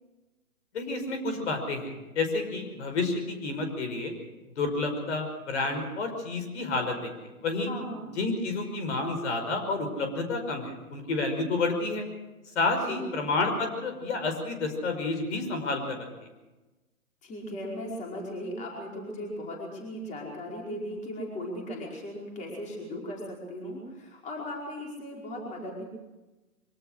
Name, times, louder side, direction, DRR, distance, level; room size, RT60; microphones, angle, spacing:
voice 1, 0.7-4.1 4.6-7.7 8.2-12.1 12.6-16.3, left 3 dB, 50° left, 6 dB, 5.5 m, -30 dB
voice 2, 7.7-8.0 12.9-13.1 17.2-25.8, left 1 dB, 15° left, -2 dB, 4.9 m, -37 dB
24.0 x 18.0 x 6.6 m, 1.1 s
hypercardioid pair, 140°, 44 cm